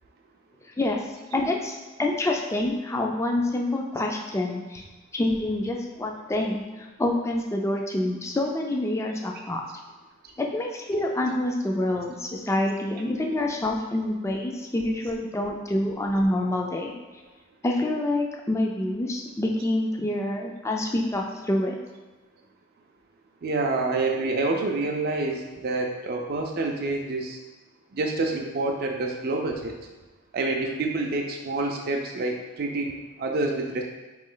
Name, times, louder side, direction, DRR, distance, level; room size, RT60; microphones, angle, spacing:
voice 1, 1.3-4.8 5.1-9.6 10.4-16.9 17.6-21.8, left 1 dB, 15° left, 1 dB, 0.4 m, -27 dB
voice 2, 23.4-27.4 27.9-29.8 30.3-33.8, right 2 dB, 50° right, 1 dB, 0.4 m, -27 dB
4.5 x 3.1 x 3.8 m, 1.2 s
head